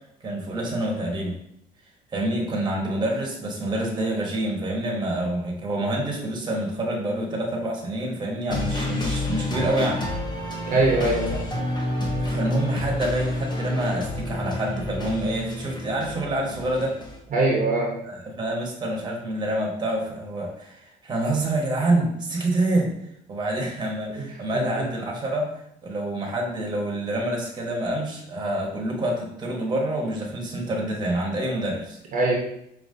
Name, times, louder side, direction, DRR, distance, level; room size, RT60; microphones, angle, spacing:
voice 1, 0.2-1.3 2.1-10.0 12.2-16.9 18.1-22.9 23.3-32.0, right 1 dB, 25° right, -1 dB, 1.2 m, -27 dB
sound 1, 8.5-17.2, left 1 dB, 25° left, 0.8 m, -29 dB
voice 2, 10.7-11.4 17.3-18.0 24.2-24.3 24.5-24.9 32.1-32.3, right 2 dB, 50° right, -2 dB, 1.0 m, -22 dB
5.0 x 2.8 x 2.7 m, 0.76 s
cardioid pair, 110°, 17 cm